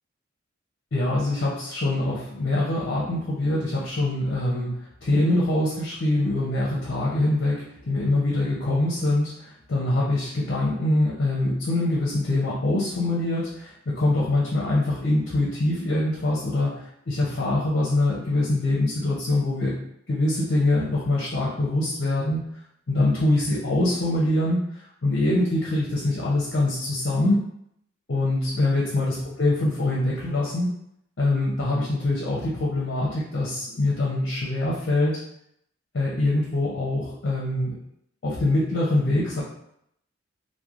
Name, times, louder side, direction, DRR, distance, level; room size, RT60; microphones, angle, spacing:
voice 1, 0.9-4.7 5.0-19.8 20.1-22.4 22.9-27.4 28.1-30.7 31.2-35.2 35.9-37.8 38.2-39.4, left 2 dB, 55° left, -5 dB, 0.6 m, -24 dB
3.0 x 2.1 x 2.4 m, 0.73 s
head